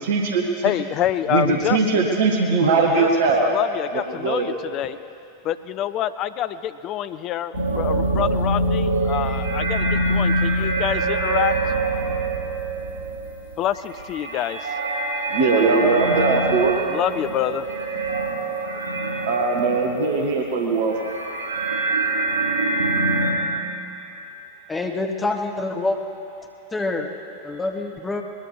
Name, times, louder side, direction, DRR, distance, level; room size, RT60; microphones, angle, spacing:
voice 1, 0.0-0.7 1.3-3.5 3.9-4.5 15.3-16.7 19.2-21.0, right 4 dB, 55° right, 2 dB, 1.5 m, -20 dB
voice 2, 0.6-2.0 3.0-3.1 3.4-5.0 5.4-11.5 13.6-14.7 16.9-17.6, left 11 dB, 35° left, 13 dB, 0.6 m, -26 dB
sound 1, 7.5-20.4 20.7-23.3, right 2 dB, 90° left, 3.2 m, -24 dB
voice 3, 24.7-26.0 26.7-27.1 27.4-28.2, left 2 dB, 15° left, 3 dB, 1.4 m, -26 dB
21.0 x 21.0 x 3.2 m, 2.7 s
figure-of-eight pair, 90°, 0 cm